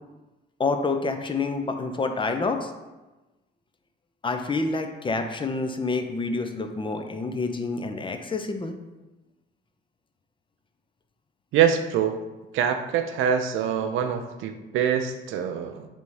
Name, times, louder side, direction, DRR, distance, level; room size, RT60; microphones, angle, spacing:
voice 1, 0.6-2.7 4.2-8.7, left 3 dB, 25° left, 6 dB, 0.5 m, -28 dB
voice 2, 11.5-12.2 12.5-15.9, right 8 dB, 85° right, 7 dB, 0.4 m, -24 dB
3.5 x 2.7 x 4.7 m, 1.1 s
cardioid pair, 90°, 20 cm